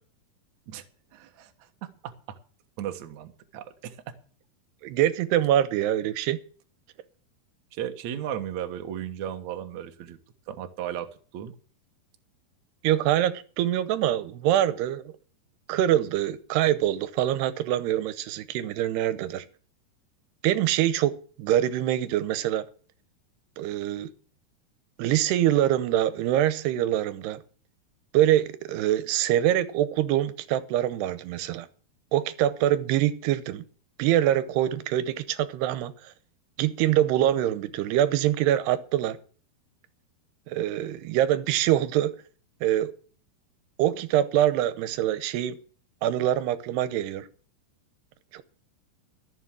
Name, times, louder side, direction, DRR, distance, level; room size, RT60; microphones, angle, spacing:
voice 1, 1.1-2.4 2.8-4.2 7.7-10.2 10.5-11.5, right 10 dB, 60° right, 2.0 m, -36 dB
voice 2, 4.8-6.4 12.8-15.1 15.7-19.4 20.4-22.7 23.6-24.1 25.0-27.4 28.1-31.7 32.1-33.6 34.0-35.9 36.6-39.2 40.5-42.1 42.6-42.9 43.8-45.6 46.0-47.3 48.3-48.4, right 12 dB, 85° right, 2.9 m, -24 dB
14.0 x 7.3 x 7.4 m
omnidirectional pair, 4.7 m